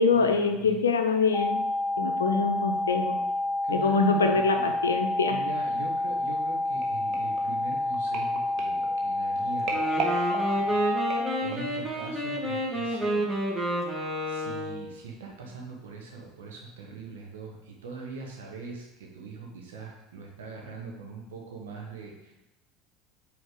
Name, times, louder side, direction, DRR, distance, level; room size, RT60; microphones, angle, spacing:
voice 1, 0.0-1.7 2.0-3.2 3.7-5.4, left 4 dB, 80° left, 6 dB, 0.6 m, -24 dB
sound 1, 1.3-11.3, left 2 dB, 15° left, 0.5 m, -29 dB
voice 2, 3.6-5.0 5.3-10.2 10.5-11.0 11.4-13.6 14.3-22.3, right 4 dB, 70° right, 0 dB, 1.4 m, -42 dB
sound 2, 6.8-11.8 12.4-12.7 12.9-13.0, right 4 dB, 50° right, 1.1 m, -38 dB
Wind instrument woodwind instrument, 9.6-14.9, right 1 dB, 10° right, 1.6 m, -30 dB
7.9 x 3.5 x 3.7 m, 0.98 s
figure-of-eight pair, 70°, 0 cm